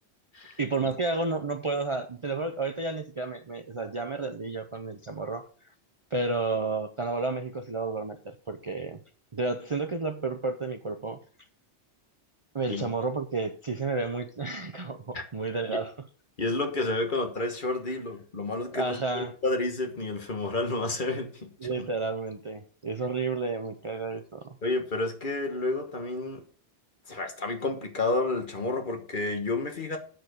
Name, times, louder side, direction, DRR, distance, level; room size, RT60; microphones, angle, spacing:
voice 1, 0.6-5.5 6.1-9.0 9.3-11.2 12.5-16.1 18.7-19.3 21.6-24.6, right 3 dB, 35° right, 0.6 m, -31 dB
voice 2, 16.4-21.5 24.6-26.4 27.1-30.0, left 2 dB, 45° left, 1.5 m, -30 dB
7.7 x 6.9 x 6.4 m
omnidirectional pair, 1.2 m